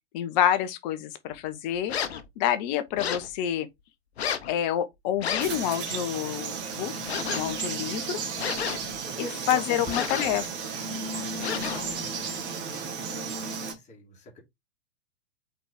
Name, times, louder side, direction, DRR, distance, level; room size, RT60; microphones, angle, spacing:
voice 1, 0.1-1.9 2.4-3.7 4.5-6.9 7.3-8.2 9.2-10.5, left 11 dB, 35° left, 1.2 m, -28 dB
sound 1, 1.9-2.3 3.0-3.3 4.2-4.5 5.2-5.6 7.1-7.5 8.4-9.0 9.9-10.4 11.4-11.9, left 8 dB, 60° left, 1.1 m, -31 dB
Frog, 5.4-13.7, right 5 dB, 30° right, 2.5 m, -34 dB
voice 2, 7.9-8.7 9.0-10.3 11.0-14.4, left 1 dB, 20° left, 3.2 m, -44 dB
5.8 x 4.8 x 3.6 m
figure-of-eight pair, 105°, 36 cm